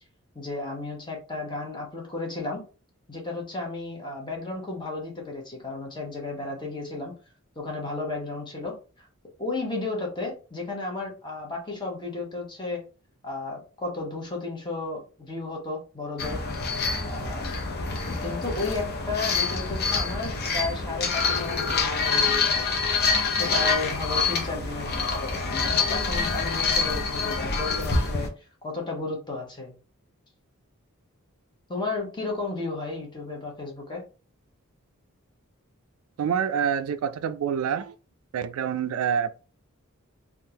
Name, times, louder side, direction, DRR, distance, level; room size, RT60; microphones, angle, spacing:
voice 1, 0.3-2.6 3.1-7.1 7.6-9.1 9.4-12.8 13.2-16.4 17.0-17.5 18.2-22.7 23.3-28.3 28.6-29.7 31.7-34.1, left 3 dB, 20° left, 1.1 m, -33 dB
sound 1, 16.2-28.3, left 4 dB, 50° left, 0.6 m, -26 dB
voice 2, 36.2-37.9 38.3-39.3, right 7 dB, 80° right, 0.3 m, -26 dB
3.6 x 2.4 x 2.8 m
head